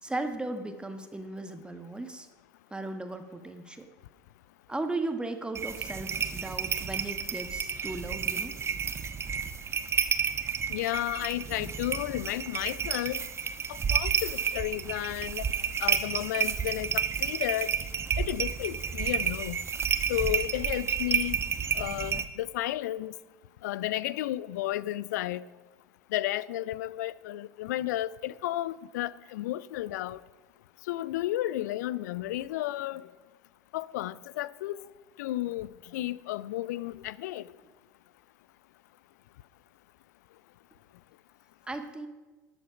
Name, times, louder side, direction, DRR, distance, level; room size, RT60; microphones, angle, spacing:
voice 1, 0.0-2.3 2.7-3.9 4.7-8.5 41.7-42.1, right 2 dB, 10° right, 1.2 m, -36 dB
sound 1, 5.6-22.3, right 7 dB, 25° right, 0.9 m, -31 dB
voice 2, 10.7-13.2 13.7-15.5 15.8-17.7 18.2-19.6 20.1-21.4 21.7-23.1 23.6-25.4 26.1-30.2 30.9-33.1 33.7-34.8 35.2-37.5, left 15 dB, 70° left, 0.4 m, -32 dB
13.0 x 8.0 x 6.0 m
figure-of-eight pair, 75°, 10 cm